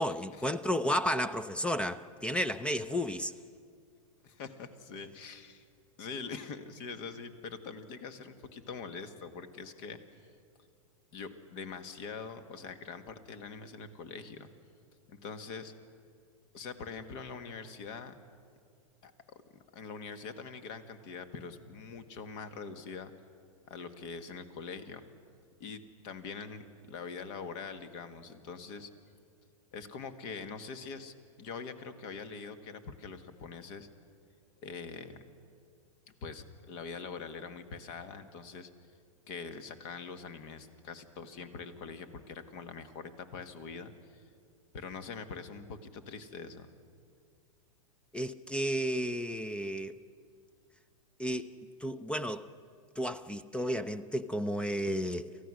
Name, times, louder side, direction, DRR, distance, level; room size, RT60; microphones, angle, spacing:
voice 1, 0.0-3.3 48.1-49.9 51.2-51.5 51.8-52.4 53.0-55.3, equal, 5° left, 0.5 m, -32 dB
voice 2, 4.2-5.6 6.0-10.0 11.1-14.5 15.1-15.7 16.5-18.1 19.0-19.1 19.7-23.1 23.7-25.0 25.6-28.9 29.7-33.9 34.6-35.2 36.2-38.7 39.3-44.2 44.7-46.7, left 5 dB, 45° left, 1.7 m, -43 dB
28.0 x 15.0 x 6.4 m
hypercardioid pair, 115°, 18 cm